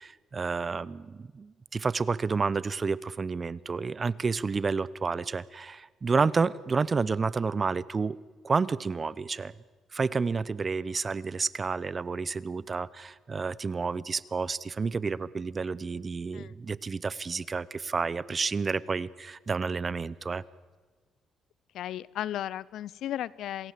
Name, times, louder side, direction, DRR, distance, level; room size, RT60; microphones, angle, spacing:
voice 1, 0.0-8.2 8.4-9.5 9.9-20.4, right 4 dB, 35° right, 0.8 m, -30 dB
voice 2, 21.7-23.7, left 12 dB, 80° left, 0.6 m, -35 dB
27.5 x 18.5 x 7.7 m
cardioid pair, 90°, 0 cm